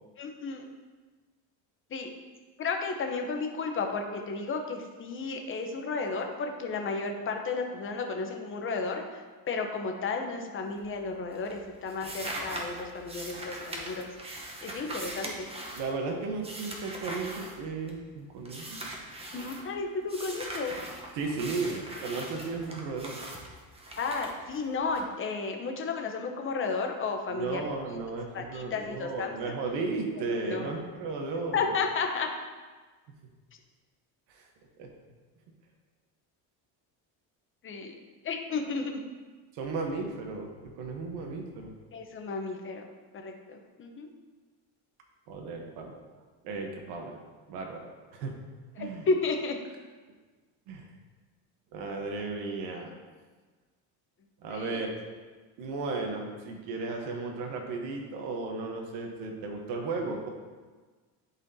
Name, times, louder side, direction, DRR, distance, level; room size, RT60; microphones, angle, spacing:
voice 1, 0.2-0.7 1.9-2.1 2.6-9.0 9.5-14.1 14.6-15.5 19.3-20.8 24.0-27.6 28.3-29.3 30.4-30.6 31.5-32.3 37.6-37.9 38.2-39.0 41.9-42.8 43.2-44.1 48.8-49.6 54.5-54.8, left 4 dB, 30° left, 3 dB, 0.8 m, -33 dB
sound 1, 10.6-11.1 11.3-18.1 18.4-19.6 20.1-25.0, right 1 dB, 15° right, 0.9 m, -41 dB
voice 2, 15.7-18.9 21.1-23.2 27.3-31.7 34.3-34.5 34.8-34.9 39.5-41.7 45.3-45.9 46.4-47.2 47.5-47.8 48.1-48.3 48.8-49.1 50.7-50.9 51.7-52.9 54.4-55.0 55.6-60.3, right 3 dB, 85° right, 1 dB, 1.1 m, -35 dB
10.5 x 4.2 x 2.7 m, 1.4 s
cardioid pair, 135°, 40 cm